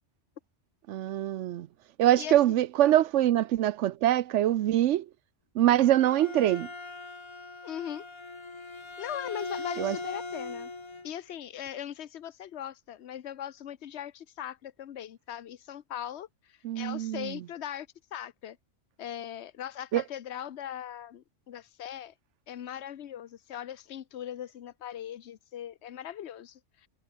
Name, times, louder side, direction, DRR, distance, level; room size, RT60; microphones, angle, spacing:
voice 1, 0.9-1.7 2.0-5.0 5.6-6.7 9.8-10.0 16.6-17.3 19.9-20.0, right 13 dB, 80° right, 0.9 m, -24 dB
Bowed string instrument, 5.6-11.1, left 3 dB, 25° left, 1.3 m, -40 dB
voice 2, 7.6-8.0 9.0-10.7 11.0-18.6 19.0-22.1 22.5-26.9, left 10 dB, 70° left, 1.1 m, -40 dB
omnidirectional pair, 1.2 m